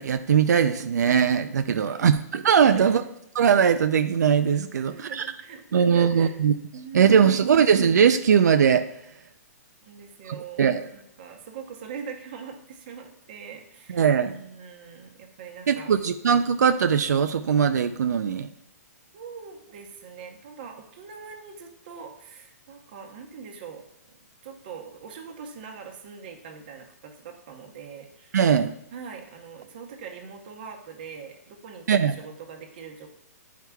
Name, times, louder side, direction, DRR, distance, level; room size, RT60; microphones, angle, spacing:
voice 1, 0.0-3.0 3.4-5.3 5.7-6.5 6.9-8.9 10.3-10.9 13.9-14.3 15.7-18.5 28.3-28.7 31.9-32.1, right 7 dB, 85° right, 9 dB, 0.4 m, -20 dB
voice 2, 1.7-2.1 2.6-3.1 4.8-6.3 6.7-7.4 9.9-15.9 19.1-23.8 24.4-28.3 28.9-33.1, right 6 dB, 35° right, 3 dB, 0.8 m, -42 dB
11.0 x 4.6 x 2.3 m, 0.77 s
hypercardioid pair, 170°, 9 cm